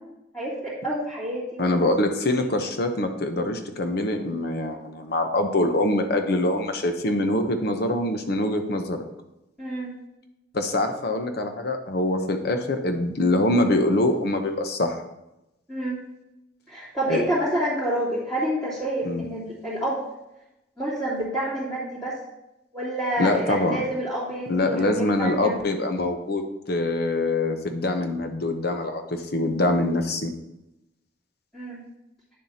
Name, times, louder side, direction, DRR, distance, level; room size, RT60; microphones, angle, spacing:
voice 1, 0.0-1.7 2.4-2.5 9.6-9.9 15.7-16.0 16.7-20.0 20.8-22.2 22.7-25.5 31.5-31.8, right 1 dB, 5° left, -14 dB, 3.0 m, -28 dB
voice 2, 1.6-9.0 10.5-15.0 17.1-17.2 19.0-19.2 23.2-23.8 24.5-30.3, left 1 dB, 55° left, 6 dB, 0.9 m, -24 dB
9.5 x 7.2 x 2.8 m, 0.91 s
head